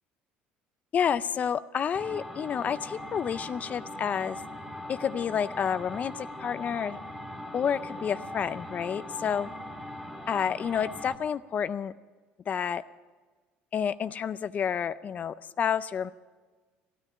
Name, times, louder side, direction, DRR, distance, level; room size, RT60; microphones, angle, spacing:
voice 1, 0.9-4.4 4.9-7.0 7.5-9.5 10.3-11.9 12.5-12.8 13.7-16.1, left 8 dB, 40° left, 15 dB, 0.4 m, -29 dB
sound 1, 1.9-11.2, left 1 dB, ahead, 1.7 m, -40 dB
16.0 x 9.8 x 8.6 m, 1.4 s
cardioid pair, 115°, 4 cm